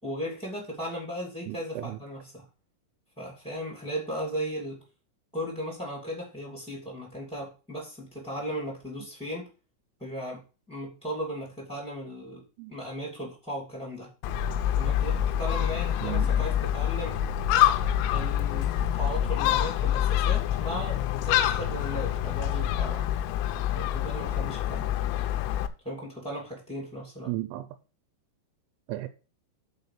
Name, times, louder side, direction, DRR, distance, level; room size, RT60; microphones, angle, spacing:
voice 1, 0.0-2.4 3.2-4.8 5.3-9.5 10.0-10.4 10.7-14.1 14.6-17.2 18.1-23.1 23.7-24.9 25.8-27.3, equal, 5° left, 0.7 m, -36 dB
voice 2, 1.5-2.0 12.6-12.7 16.0-16.4 27.3-27.7 28.9-29.1, right 17 dB, 85° right, 3.3 m, -34 dB
Gull seagull, 14.2-25.7, left 11 dB, 85° left, 3.3 m, -26 dB
7.5 x 4.3 x 6.7 m
omnidirectional pair, 5.9 m